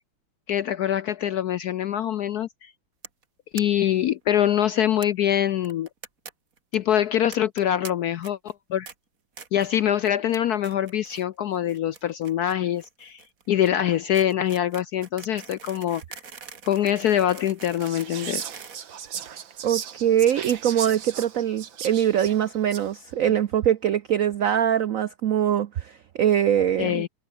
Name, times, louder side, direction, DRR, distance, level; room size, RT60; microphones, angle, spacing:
voice 1, 0.5-2.7 3.5-5.9 6.7-8.9 9.5-16.2 16.6-18.4 26.8-27.1, left 11 dB, 70° left, 0.9 m, -24 dB
sound 1, 3.0-3.2 3.6-3.7 3.9-4.0 4.2-4.3 5.0-5.1 5.6-6.3 6.6-6.8 7.3-7.9 8.2-8.5 8.9-9.0 9.4-9.7 10.0-10.4 10.6-11.2 11.5-19.6, right 6 dB, 45° right, 2.1 m, -43 dB
Whispering, 17.8-23.0, right 8 dB, 65° right, 2.3 m, -37 dB
voice 2, 19.6-27.0, right 10 dB, 85° right, 0.7 m, -23 dB
omnidirectional pair, 2.3 m